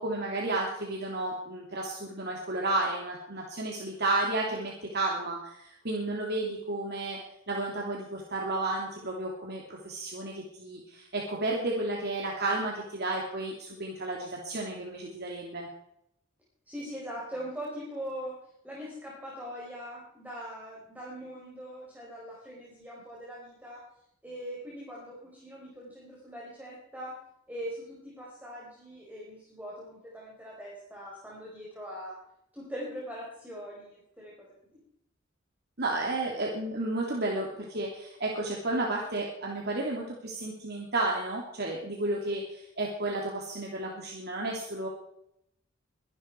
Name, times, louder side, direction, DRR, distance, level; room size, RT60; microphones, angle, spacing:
voice 1, 0.0-7.2 7.5-15.7 35.8-44.9, right 2 dB, 55° right, -1 dB, 3.0 m, -32 dB
voice 2, 16.7-18.3 18.6-23.8 24.2-27.1 27.5-32.1 32.5-34.3 34.7-34.8, equal, 10° right, -5 dB, 4.6 m, -41 dB
23.5 x 11.5 x 4.7 m, 0.77 s
head